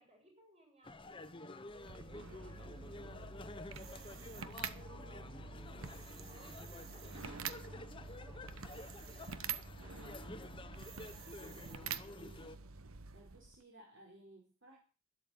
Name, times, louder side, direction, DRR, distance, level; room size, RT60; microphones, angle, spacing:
voice 1, 0.0-1.6 1.9-3.6 5.7-6.7 7.0-9.3, right 1 dB, 30° right, 1 dB, 7.9 m, -66 dB
sound 1, 0.8-12.6, left 2 dB, 25° left, 0.9 m, -51 dB
sound 2, 1.7-13.6, right 6 dB, 75° right, 1.0 m, -47 dB
sound 3, 2.1-12.0, left 1 dB, 5° right, 2.7 m, -59 dB
voice 2, 4.8-5.4 11.3-12.5 13.1-14.8, right 1 dB, 60° right, -1 dB, 4.8 m, -59 dB
12.5 x 11.0 x 8.6 m, 0.39 s
head